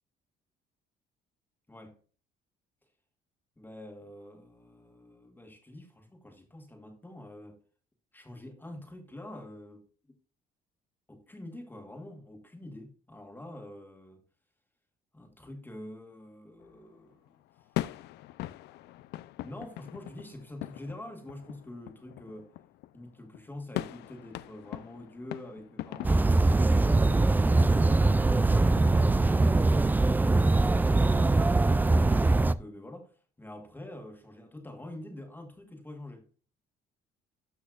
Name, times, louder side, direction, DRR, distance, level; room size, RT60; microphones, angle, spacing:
voice 1, 1.7-2.0 3.6-7.6 8.1-10.1 11.1-14.2 15.1-17.3 19.4-22.5 22.9-27.2 27.5-29.6 30.3-36.3, left 1 dB, 10° left, 1.7 m, -46 dB
sound 1, 16.6-29.9, left 15 dB, 80° left, 0.5 m, -42 dB
sound 2, 26.0-32.5, right 2 dB, 10° right, 0.3 m, -22 dB
12.5 x 6.3 x 2.4 m
cardioid pair, 110°, 17 cm